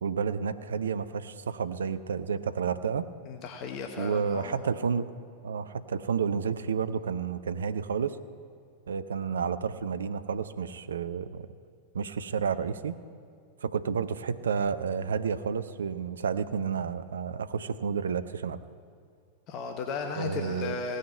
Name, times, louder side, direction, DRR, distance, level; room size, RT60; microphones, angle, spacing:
voice 1, 0.0-3.1 4.0-5.1 5.4-8.2 8.9-11.5 11.9-13.0 13.6-18.6 20.2-20.8, right 6 dB, 65° right, 13 dB, 0.6 m, -30 dB
voice 2, 3.3-4.6 19.5-21.0, left 5 dB, 35° left, 3 dB, 1.1 m, -35 dB
17.0 x 6.5 x 8.6 m, 2.2 s
figure-of-eight pair, 90°, 0 cm